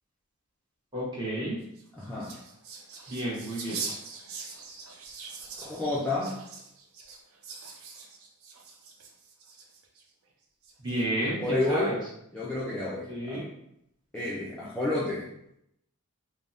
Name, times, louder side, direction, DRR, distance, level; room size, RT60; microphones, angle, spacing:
voice 1, 0.9-1.6 3.1-3.8 10.8-12.0 13.1-13.4, right 1 dB, 20° right, -5 dB, 0.8 m, -31 dB
sound 1, 1.6-10.0 10.6-11.2, right 4 dB, 70° right, 0.4 m, -42 dB
voice 2, 1.9-2.3 5.6-6.4 11.4-11.9 12.3-13.4 14.1-15.3, left 2 dB, 5° left, -8 dB, 0.3 m, -30 dB
3.4 x 2.0 x 2.5 m, 0.77 s
head